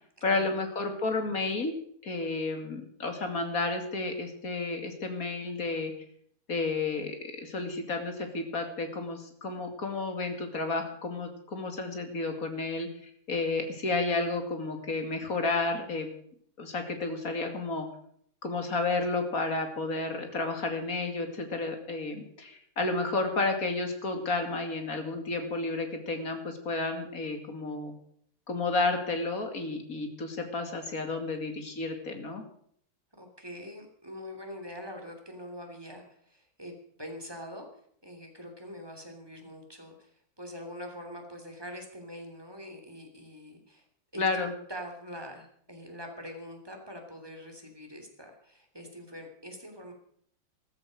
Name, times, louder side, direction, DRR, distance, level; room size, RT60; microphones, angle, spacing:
voice 1, 0.2-1.7 2.0-5.9 6.5-16.1 16.6-17.9 18.4-27.9 28.5-32.4 44.2-44.5, left 3 dB, 45° left, 5 dB, 2.9 m, -31 dB
voice 2, 33.2-37.7 38.0-40.1 40.4-43.8 44.1-49.9, equal, 10° right, 3 dB, 3.2 m, -44 dB
14.5 x 14.0 x 6.5 m, 0.64 s
omnidirectional pair, 2.0 m